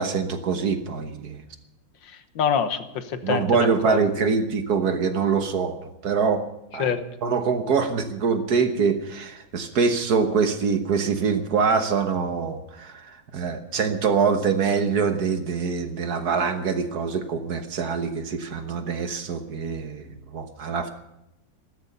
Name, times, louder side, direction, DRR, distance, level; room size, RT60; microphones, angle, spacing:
voice 1, 0.0-1.4 3.2-6.5 6.7-6.9 7.2-20.9, right 5 dB, 55° right, 8 dB, 1.6 m, -24 dB
voice 2, 2.0-4.3 6.8-7.1, left 7 dB, 75° left, 10 dB, 1.8 m, -26 dB
15.0 x 13.5 x 6.8 m, 0.85 s
omnidirectional pair, 2.1 m